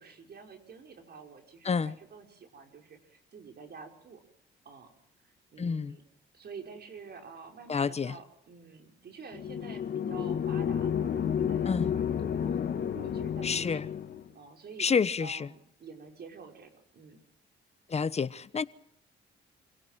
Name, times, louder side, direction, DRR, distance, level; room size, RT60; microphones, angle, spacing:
voice 1, 0.0-4.2 4.6-4.9 5.2-6.0 6.3-13.8 14.3-14.9 15.2-17.2, right 5 dB, 55° right, 5.0 m, -49 dB
voice 2, 5.6-6.0 7.7-8.1 11.7-11.9 13.4-13.8 14.8-15.5 17.9-18.6, left 5 dB, 30° left, 1.1 m, -29 dB
sound 1, 9.3-14.3, left 8 dB, 55° left, 1.8 m, -31 dB
27.0 x 17.5 x 7.4 m
cardioid pair, 90°, 20 cm